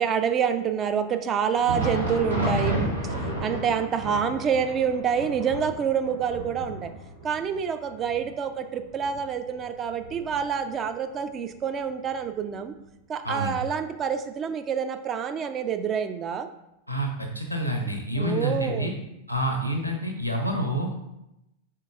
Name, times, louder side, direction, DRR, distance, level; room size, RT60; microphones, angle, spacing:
voice 1, 0.0-2.9 3.4-6.9 7.2-12.7 13.1-16.5 18.2-18.9, right 7 dB, 25° right, 9 dB, 0.3 m, -27 dB
Thunder, 1.4-10.9 11.2-11.4 12.1-12.3 13.2-13.3, right 1 dB, 75° right, 1.0 m, -32 dB
voice 2, 13.2-13.6 16.9-18.9 19.3-20.9, right 1 dB, 90° left, 3 dB, 0.7 m, -28 dB
4.6 x 4.0 x 2.4 m, 0.88 s
figure-of-eight pair, 90°, 0 cm